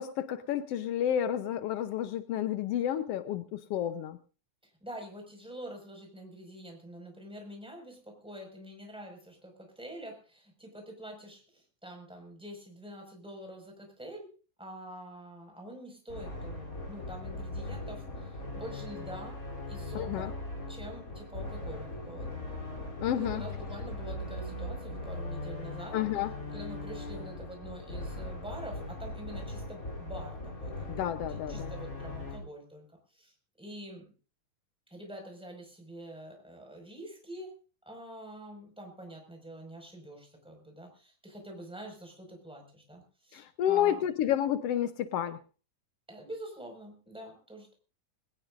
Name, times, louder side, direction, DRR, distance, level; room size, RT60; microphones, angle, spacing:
voice 1, 0.0-4.2 19.9-20.3 23.0-23.4 25.9-26.3 30.9-31.7 43.3-45.4, left 10 dB, 85° left, 10 dB, 1.3 m, -30 dB
voice 2, 4.8-14.3 14.6-19.4 19.7-20.3 20.7-22.3 23.2-26.0 26.5-32.8 33.1-33.3 33.6-34.1 34.9-44.0 46.1-47.7, right 1 dB, ahead, 2 dB, 5.2 m, -46 dB
sound 1, 16.1-32.4, left 2 dB, 25° left, 3.5 m, -39 dB
21.5 x 18.5 x 2.6 m, 0.35 s
omnidirectional pair, 3.8 m